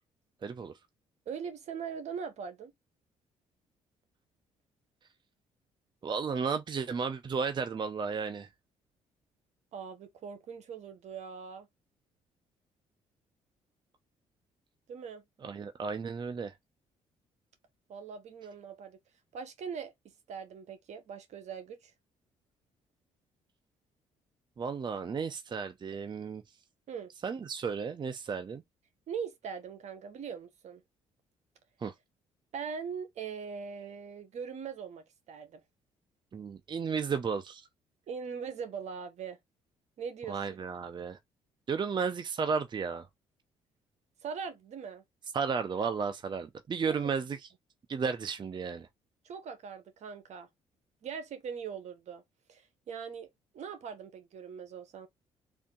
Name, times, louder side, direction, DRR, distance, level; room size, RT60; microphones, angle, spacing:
voice 1, 0.4-0.7 6.0-8.5 15.4-16.5 24.6-26.4 27.2-28.6 31.8-31.9 36.3-37.7 40.3-41.2 41.7-43.1 45.3-47.5 47.9-48.9, right 5 dB, 35° right, 0.6 m, -33 dB
voice 2, 1.3-2.7 9.7-11.7 14.9-15.2 17.9-19.0 19.3-21.9 26.9-27.1 29.1-30.8 32.5-35.6 38.1-39.4 40.0-40.4 44.2-45.0 46.9-47.0 49.2-50.5 51.0-52.2 52.5-53.3 53.5-55.1, right 6 dB, 65° right, 1.1 m, -41 dB
3.6 x 2.7 x 3.7 m
supercardioid pair, 70°, 13 cm